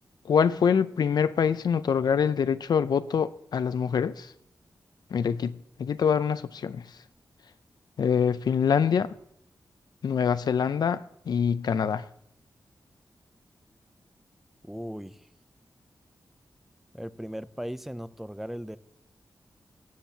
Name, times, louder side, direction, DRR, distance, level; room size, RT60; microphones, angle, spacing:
voice 1, 0.2-4.3 5.1-6.9 8.0-9.1 10.0-12.1, left 7 dB, 75° left, 0.4 m, -25 dB
voice 2, 14.7-15.3 16.9-18.8, equal, 5° right, 0.4 m, -37 dB
18.5 x 7.5 x 2.7 m
wide cardioid pair, 155°, 7 cm